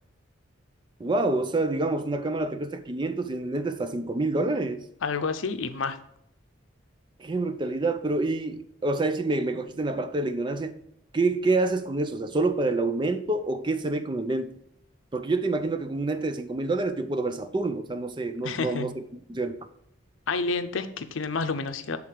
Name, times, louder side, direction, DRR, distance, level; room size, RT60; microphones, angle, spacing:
voice 1, 1.0-4.9 7.2-10.8 11.1-14.5 15.1-18.9 19.3-19.7, right 2 dB, 25° right, 0.4 m, -27 dB
voice 2, 5.0-6.0 18.4-18.9 20.3-22.0, left 4 dB, 85° left, 0.6 m, -29 dB
7.7 x 3.6 x 4.6 m
head